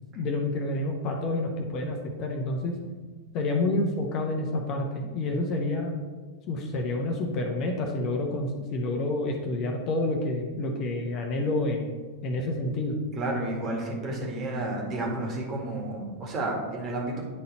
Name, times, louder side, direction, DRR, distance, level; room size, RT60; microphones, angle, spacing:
voice 1, 0.1-2.7 3.3-5.9 6.5-11.9 12.2-13.0, left 2 dB, 35° left, 2 dB, 1.0 m, -28 dB
voice 2, 13.2-17.2, right 2 dB, 30° right, -1 dB, 1.9 m, -31 dB
9.7 x 4.1 x 4.2 m, 1.3 s
figure-of-eight pair, 90°, 0 cm